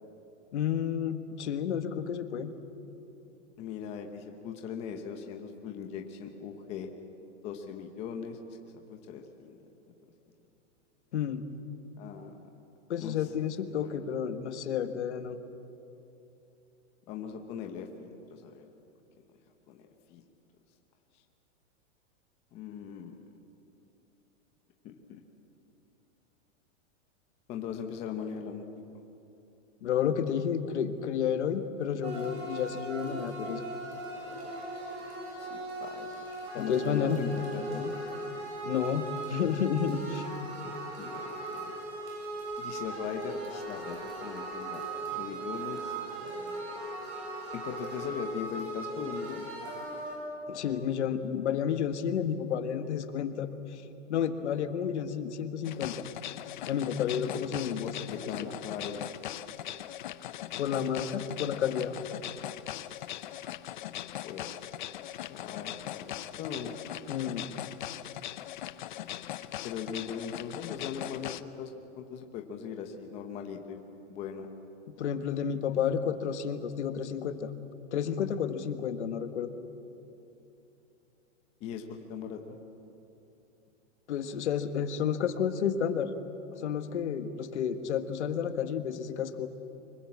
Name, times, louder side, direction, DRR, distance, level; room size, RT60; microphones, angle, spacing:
voice 1, 0.5-2.5 11.1-11.4 12.9-15.4 29.8-33.6 36.6-37.2 38.6-40.3 50.5-53.8 54.1-55.9 56.7-58.5 60.6-62.0 67.1-67.4 75.0-77.5 77.9-79.5 84.1-86.1 86.6-89.5, left 8 dB, 60° left, 8 dB, 1.6 m, -31 dB
voice 2, 3.6-6.9 7.4-8.4 8.9-9.6 12.0-12.4 13.0-13.3 13.8-13.9 17.1-18.6 19.7-20.2 22.5-23.2 24.8-25.2 27.5-28.6 35.4-36.3 36.5-37.9 41.0-41.3 41.6-41.7 42.6-44.8 45.2-46.0 47.5-49.5 57.8-59.0 62.9-63.2 64.2-64.5 65.2-66.8 69.6-71.7 72.0-73.8 74.1-74.5 81.6-82.6, left 7 dB, 15° left, 4 dB, 0.9 m, -39 dB
sound 1, 32.0-50.2, right 2 dB, 55° right, 7.6 m, -38 dB
sound 2, 55.6-71.4, left 12 dB, 40° left, 0.7 m, -40 dB
25.0 x 21.5 x 8.6 m, 2.9 s
supercardioid pair, 170°, 38 cm